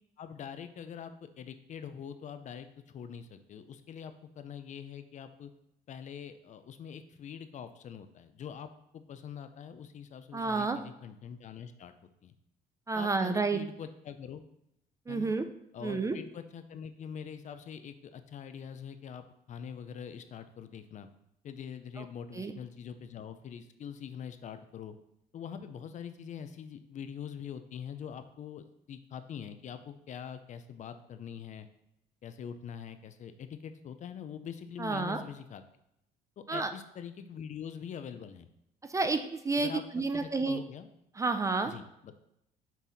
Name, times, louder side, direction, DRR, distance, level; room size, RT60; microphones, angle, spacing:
voice 1, 0.2-5.5 5.9-11.9 12.2-12.3 12.9-14.4 15.1-15.3 15.7-21.1 21.4-25.0 25.3-31.7 32.2-35.6 36.4-38.5 39.6-40.9 41.6-42.1, left 8 dB, 45° left, 10 dB, 0.5 m, -44 dB
voice 2, 10.3-10.8 12.9-13.6 15.1-15.4 15.8-16.2 22.0-22.1 22.3-22.5 34.8-35.2 36.5-36.7 38.9-40.6 41.2-41.7, right 3 dB, 20° right, 8 dB, 0.4 m, -30 dB
6.2 x 4.0 x 4.0 m, 0.80 s
cardioid pair, 110°, 17 cm